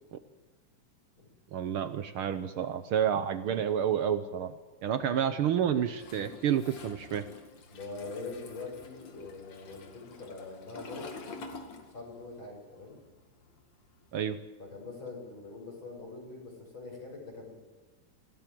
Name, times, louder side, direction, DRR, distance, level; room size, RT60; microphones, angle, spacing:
voice 1, 1.5-4.6 4.8-7.2 14.1-14.4, right 9 dB, 80° right, 11 dB, 1.2 m, -29 dB
Toilet flush, 5.9-12.4 12.6-14.2, left 3 dB, 60° left, 3.3 m, -48 dB
voice 2, 7.7-11.1 11.9-13.0 14.6-17.5, left 3 dB, 35° left, 0 dB, 7.2 m, -43 dB
26.0 x 17.0 x 7.7 m, 1.3 s
omnidirectional pair, 3.6 m